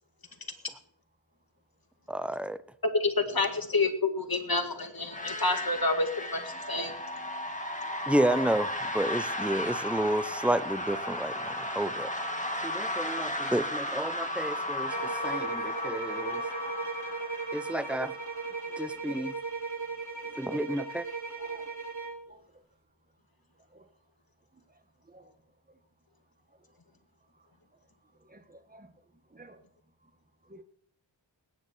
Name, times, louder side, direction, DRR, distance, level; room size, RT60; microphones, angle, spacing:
voice 1, 2.1-2.6 8.1-12.1 12.6-16.4 17.5-18.1 18.8-19.3 20.4-21.1, right 1 dB, 5° right, 0.8 m, -31 dB
voice 2, 2.9-6.4 6.7-6.9, left 3 dB, 50° left, 2.1 m, -28 dB
sound 1, 5.0-18.8, left 1 dB, 15° left, 2.5 m, -35 dB
sound 2, 14.9-22.2, right 4 dB, 40° right, 3.2 m, -37 dB
voice 3, 21.3-21.7 22.3-22.4 23.7-23.8 25.1-25.3 28.3-28.9 29.3-29.6 30.5-30.6, right 2 dB, 20° right, 1.7 m, -52 dB
20.0 x 9.6 x 4.5 m
wide cardioid pair, 40°, 46 cm